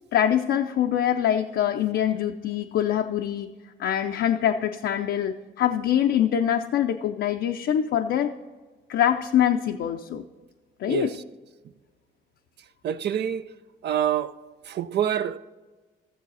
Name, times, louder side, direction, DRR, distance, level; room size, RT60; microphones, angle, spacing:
voice 1, 0.1-3.5 3.8-8.3 8.9-10.2 10.8-11.2, left 10 dB, 70° left, 0.5 m, -24 dB
voice 2, 12.8-13.4 13.8-14.3 14.7-15.4, right 9 dB, 60° right, 0.5 m, -26 dB
14.5 x 7.3 x 4.0 m
cardioid pair, 90°, 20 cm